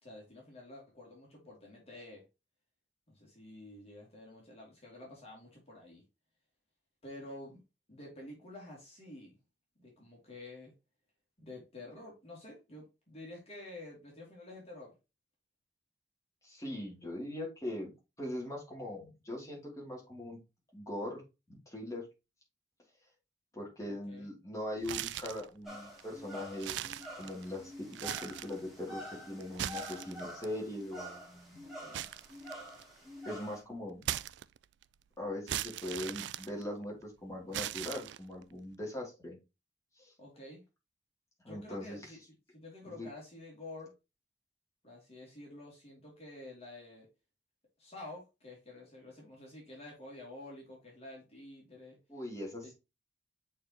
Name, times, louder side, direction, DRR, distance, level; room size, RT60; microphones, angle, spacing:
voice 1, 0.0-2.2 3.1-6.0 7.0-7.6 7.9-9.4 9.8-10.7 11.4-14.9 23.8-24.3 31.6-32.1 40.2-40.6 41.4-42.2 42.5-43.9 44.8-47.1 47.8-52.0 52.6-52.7, left 2 dB, 35° left, -2 dB, 2.9 m, -49 dB
voice 2, 16.4-17.9 18.2-20.4 20.7-21.2 21.5-22.0 23.5-26.9 27.2-27.7 28.0-31.6 33.2-34.0 35.2-39.4 40.0-40.1 41.4-42.0 42.8-43.1 52.1-52.7, left 1 dB, 20° left, -2 dB, 3.0 m, -41 dB
sound 1, 24.8-25.5 26.0-26.1 26.5-27.6 27.9-28.6 29.4-30.5 31.9-33.0 34.0-34.8 35.5-37.0 37.5-38.4, right 12 dB, 70° right, 0.3 m, -39 dB
sound 2, 25.6-33.6, equal, ahead, 2.9 m, -47 dB
7.2 x 4.6 x 3.0 m, 0.26 s
head